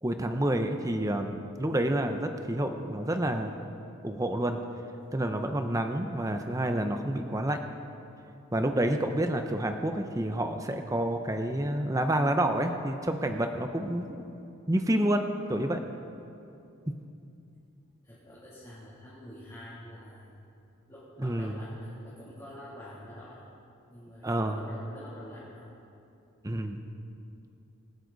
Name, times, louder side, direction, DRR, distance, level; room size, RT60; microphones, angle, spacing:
voice 1, 0.0-3.6 4.0-4.6 5.1-7.6 8.5-14.4 14.7-15.8 21.2-21.5 24.2-24.6 26.4-26.8, right 1 dB, 15° right, 6 dB, 0.7 m, -29 dB
voice 2, 17.8-20.3 20.9-23.5 23.9-25.7, left 1 dB, 15° left, -10 dB, 2.7 m, -47 dB
25.0 x 9.9 x 4.0 m, 2.7 s
head